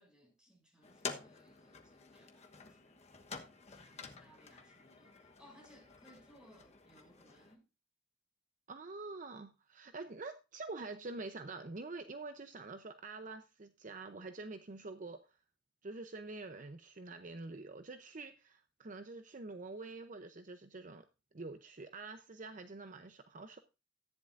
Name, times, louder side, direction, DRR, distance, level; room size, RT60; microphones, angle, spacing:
voice 1, 0.0-3.0 3.7-7.7, equal, 5° right, 6.4 m, -64 dB
sound 1, 0.8-7.6, left 5 dB, 40° left, 1.2 m, -49 dB
voice 2, 8.7-15.4 15.8-21.0 21.3-23.6, right 3 dB, 45° right, 0.7 m, -46 dB
14.0 x 10.0 x 2.6 m
head